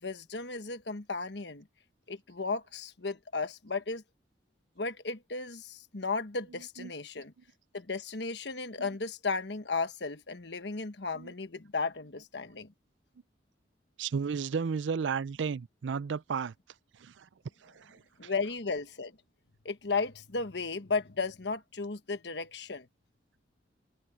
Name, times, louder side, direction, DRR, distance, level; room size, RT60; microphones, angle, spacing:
voice 1, 0.0-1.7 2.1-4.0 4.8-7.3 7.7-12.7 18.2-19.1 19.6-22.9, left 4 dB, 65° left, 1.3 m, -35 dB
voice 2, 6.5-6.9 8.8-8.9 11.1-11.3 14.0-16.5 16.9-17.3 17.6-18.3, right 6 dB, 80° right, 0.5 m, -34 dB
head